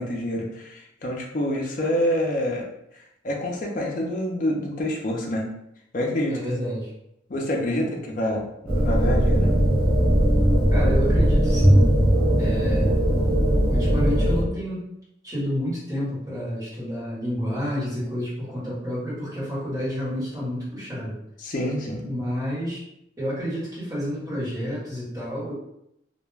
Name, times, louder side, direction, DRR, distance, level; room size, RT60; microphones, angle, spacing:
voice 1, 0.0-2.6 3.2-5.4 5.9-6.4 7.3-8.5 8.8-9.5 21.4-22.0, left 1 dB, 40° left, -1 dB, 0.4 m, -27 dB
voice 2, 6.3-6.9 10.7-11.9 12.4-13.0 13.7-14.9 15.2-21.1 22.0-22.8 23.2-25.5, equal, 20° right, -9 dB, 1.1 m, -29 dB
sound 1, 8.7-14.4, equal, 5° left, 0.8 m, -19 dB
2.2 x 2.1 x 3.1 m, 0.79 s
head